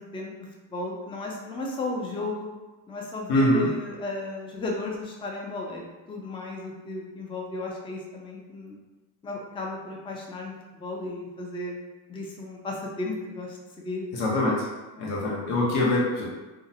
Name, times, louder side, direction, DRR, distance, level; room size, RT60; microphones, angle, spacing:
voice 1, 0.0-2.5 2.9-8.7 9.2-11.8 12.1-14.1, left 2 dB, 10° left, -2 dB, 0.4 m, -34 dB
voice 2, 3.3-3.7 14.1-14.7 15.0-16.3, left 1 dB, 80° left, -4 dB, 1.0 m, -24 dB
2.7 x 2.1 x 2.7 m, 1.1 s
supercardioid pair, 70°, 50 cm